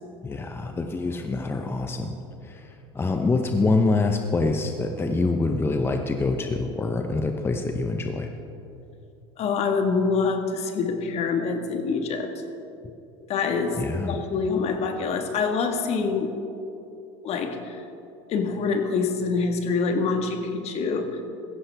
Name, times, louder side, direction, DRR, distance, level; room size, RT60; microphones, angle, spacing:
voice 1, 0.2-2.2 2.4-8.3 13.8-14.2, left 3 dB, 15° left, 5 dB, 0.8 m, -25 dB
voice 2, 9.4-12.3 13.3-13.8 14.1-16.3 17.2-17.8 18.3-21.2, left 4 dB, 50° left, 5 dB, 1.6 m, -25 dB
16.0 x 14.5 x 3.4 m, 2.8 s
supercardioid pair, 95°, 14 cm